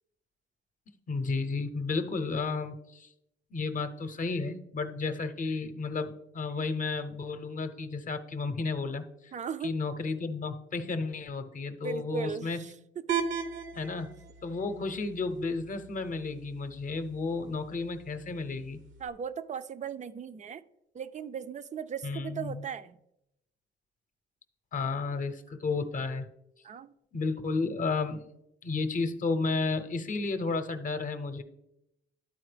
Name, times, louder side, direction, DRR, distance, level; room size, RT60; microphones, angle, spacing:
voice 1, 1.1-3.1 3.5-9.3 9.6-12.6 13.7-14.1 14.4-18.8 22.0-22.6 24.7-26.3 27.1-28.3 28.6-31.4, left 3 dB, 40° left, 10 dB, 0.7 m, -32 dB
voice 2, 9.3-9.7 11.8-12.7 13.1-13.2 19.0-20.6 20.9-23.0 26.6-26.9, right 7 dB, 35° right, 13 dB, 0.4 m, -37 dB
sound 1, 13.1-19.1, right 7 dB, 75° right, 0.8 m, -39 dB
12.0 x 4.3 x 3.3 m, 0.85 s
cardioid pair, 90°, 20 cm